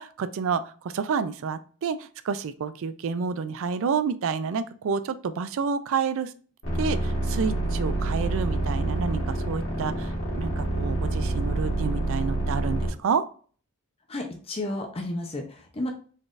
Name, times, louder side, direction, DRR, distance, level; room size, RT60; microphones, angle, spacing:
voice 1, 0.0-6.3 6.8-13.2, right 6 dB, 65° right, 12 dB, 0.4 m, -29 dB
sound 1, 6.6-12.9, right 2 dB, 65° left, 1.6 m, -27 dB
voice 2, 14.1-15.9, left 1 dB, 30° left, 3 dB, 0.6 m, -32 dB
4.1 x 3.3 x 2.5 m, 0.41 s
head